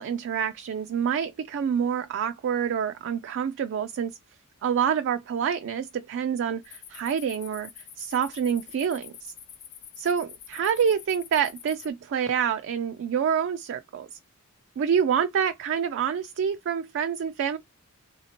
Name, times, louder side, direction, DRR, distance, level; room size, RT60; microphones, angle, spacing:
voice 1, 0.0-4.2 4.6-7.7 8.0-9.3 10.0-14.2 14.8-17.6, right 7 dB, 55° right, 0.3 m, -27 dB
sound 1, 6.6-11.9, left 9 dB, 85° left, 1.0 m, -46 dB
3.3 x 2.8 x 2.8 m
head